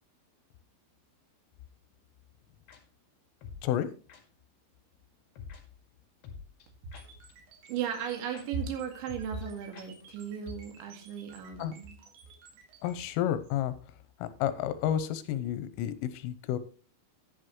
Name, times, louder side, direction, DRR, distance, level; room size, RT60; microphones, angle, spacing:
sound 1, 2.7-2.8 3.4-3.6 4.1-4.2 5.4-5.6 6.2-7.3 7.7-7.8 8.0-8.1 8.3-8.5 8.7-8.8 9.1-9.5 9.7-9.9 10.1-10.2 10.5-10.6, left 6 dB, 60° left, 4.1 m, -46 dB
sound 2, 6.9-13.1, right 6 dB, 90° right, 5.1 m, -55 dB
voice 1, 7.7-12.0, right 7 dB, 70° right, 3 dB, 4.2 m, -36 dB
voice 2, 12.8-13.7 14.2-16.6, left 11 dB, 85° left, 12 dB, 3.5 m, -31 dB
12.0 x 10.0 x 3.1 m, 0.39 s
omnidirectional pair, 5.7 m